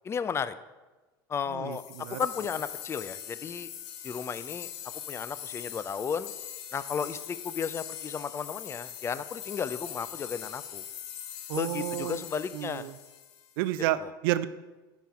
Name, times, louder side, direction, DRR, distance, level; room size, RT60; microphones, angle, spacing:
voice 1, 0.0-0.5 1.3-1.8 2.2-3.7 4.0-4.7 5.1-6.3 6.7-10.8 11.6-12.9, left 6 dB, 20° left, 14 dB, 0.3 m, -34 dB
voice 2, 1.5-2.3 11.5-12.2 12.5-13.0 13.6-14.5, right 14 dB, 70° right, 14 dB, 0.4 m, -31 dB
sound 1, 1.7-13.7, left 10 dB, 60° left, 0.7 m, -42 dB
8.3 x 4.0 x 4.7 m, 1.2 s
hypercardioid pair, 95°, 12 cm